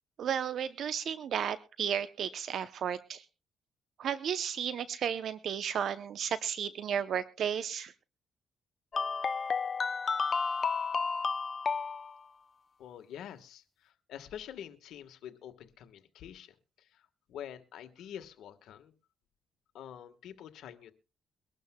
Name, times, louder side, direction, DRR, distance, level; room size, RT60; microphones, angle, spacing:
voice 1, 0.2-3.2 4.0-7.9, right 8 dB, 65° right, 13 dB, 0.6 m, -33 dB
sound 1, 8.9-12.1, left 5 dB, 40° left, 0.6 m, -31 dB
voice 2, 12.8-18.9 19.7-20.9, left 9 dB, 80° left, 8 dB, 1.3 m, -47 dB
23.0 x 12.0 x 2.2 m, 0.32 s
cardioid pair, 90°, 0 cm